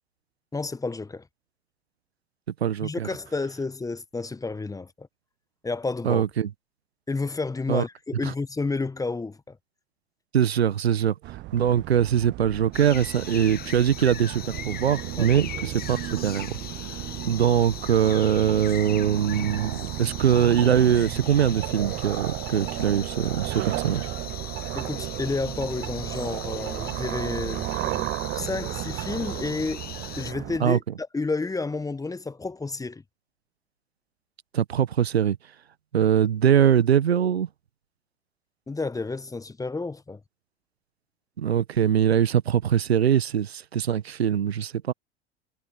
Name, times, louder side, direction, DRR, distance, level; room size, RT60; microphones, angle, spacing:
voice 1, 0.5-1.2 2.8-5.1 5.6-6.2 7.1-9.6 15.2-15.3 24.7-29.8 30.2-33.0 38.7-40.2, left 3 dB, 10° left, 1.5 m, -31 dB
voice 2, 2.6-3.1 6.0-6.5 7.7-7.8 10.3-16.5 17.3-24.1 30.6-30.8 34.5-35.4 35.9-37.5 41.4-44.9, right 9 dB, 75° right, 1.5 m, -22 dB
sound 1, 11.2-30.6, right 19 dB, 35° right, 0.7 m, -34 dB
sound 2, 12.7-30.3, left 10 dB, 30° left, 1.9 m, -40 dB
figure-of-eight pair, 80°, 31 cm